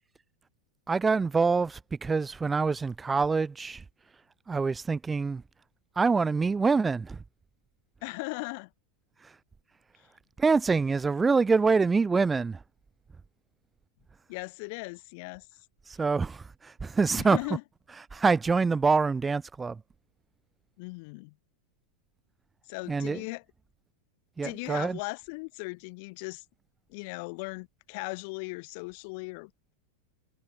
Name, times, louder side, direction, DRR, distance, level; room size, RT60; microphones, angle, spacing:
voice 1, 0.9-3.8 4.5-5.4 6.0-7.2 10.4-12.6 15.9-17.4 18.1-19.8 22.9-23.2 24.4-25.0, right 4 dB, 15° right, 0.7 m, -25 dB
voice 2, 8.0-8.7 10.0-10.1 14.3-15.5 17.2-17.6 20.8-21.4 22.7-23.4 24.4-26.4 26.9-29.7, left 30 dB, 45° left, 2.2 m, -38 dB
figure-of-eight pair, 90°, 0 cm